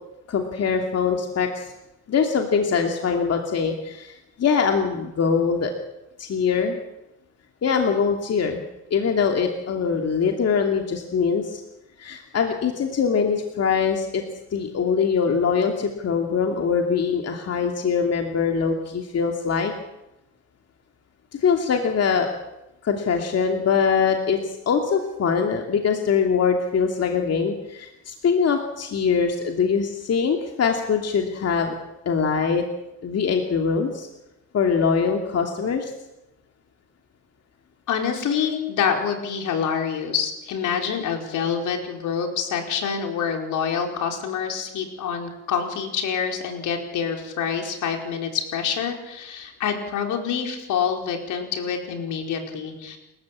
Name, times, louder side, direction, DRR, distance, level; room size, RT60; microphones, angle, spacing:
voice 1, 0.3-1.7 2.1-5.7 6.2-6.8 7.6-8.6 8.9-11.6 12.0-14.2 14.5-19.7 21.4-22.3 22.8-31.7 32.1-32.6 33.0-34.1 34.5-35.9, left 6 dB, 55° left, 3 dB, 2.7 m, -23 dB
voice 2, 37.9-53.0, left 7 dB, 80° left, 3 dB, 4.9 m, -26 dB
29.0 x 14.0 x 8.6 m, 0.93 s
cardioid pair, 90°, 30 cm